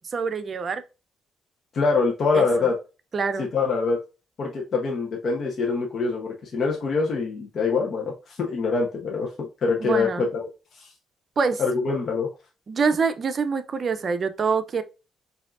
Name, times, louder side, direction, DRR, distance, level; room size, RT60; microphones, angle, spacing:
voice 1, 0.1-0.8 2.3-2.4 3.1-3.5 9.8-10.3 11.4-11.6 12.7-14.8, right 5 dB, 45° right, 0.5 m, -25 dB
voice 2, 1.7-2.8 3.4-4.0 4.4-10.5 10.7-10.9 11.6-12.3, left 4 dB, 55° left, 0.9 m, -24 dB
4.8 x 2.7 x 2.5 m
cardioid pair, 90°, 0 cm